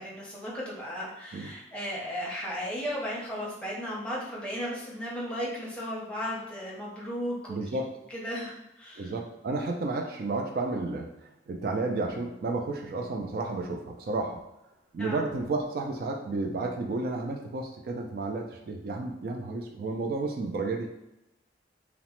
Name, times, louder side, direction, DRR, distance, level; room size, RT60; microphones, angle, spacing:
voice 1, 0.0-7.7 8.1-9.2 15.0-15.2, equal, 5° left, -5 dB, 0.6 m, -35 dB
voice 2, 7.5-7.9 9.0-11.1 11.5-14.4 14.9-20.9, right 3 dB, 55° right, 2 dB, 0.3 m, -32 dB
2.9 x 2.0 x 2.9 m, 0.92 s
head